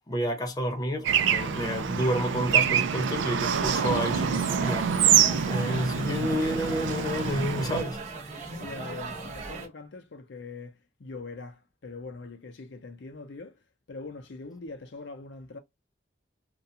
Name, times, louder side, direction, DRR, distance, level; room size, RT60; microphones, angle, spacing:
voice 1, 0.1-4.9 5.5-8.0, equal, 20° left, 0.5 m, -30 dB
Bird / Traffic noise roadway noise, 1.0-7.8, right 8 dB, 80° right, 0.4 m, -26 dB
sound 1, 3.5-9.7, right 3 dB, 40° right, 0.8 m, -38 dB
voice 2, 8.6-13.6 13.9-15.6, left 3 dB, 80° left, 0.6 m, -42 dB
2.4 x 2.3 x 2.7 m
head